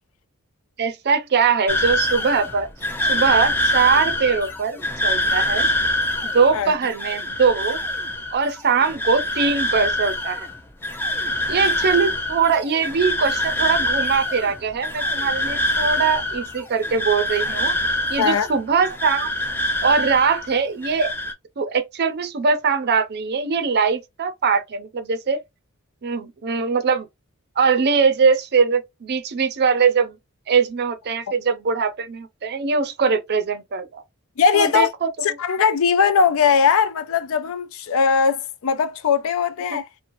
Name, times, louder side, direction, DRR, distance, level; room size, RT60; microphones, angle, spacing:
voice 1, 0.8-2.7 3.1-5.7 6.2-7.8 8.3-10.5 11.5-17.8 18.1-19.3 19.8-21.1 21.6-25.4 26.0-27.1 27.6-30.2 30.5-34.0 34.5-35.4 39.7-39.8, right 5 dB, 50° right, 0.5 m, -21 dB
sound 1, 1.7-20.6 20.8-21.3, left 1 dB, 10° left, 0.5 m, -25 dB
voice 2, 34.4-34.9 35.2-39.9, left 6 dB, 65° left, 0.4 m, -19 dB
3.0 x 2.1 x 2.5 m
head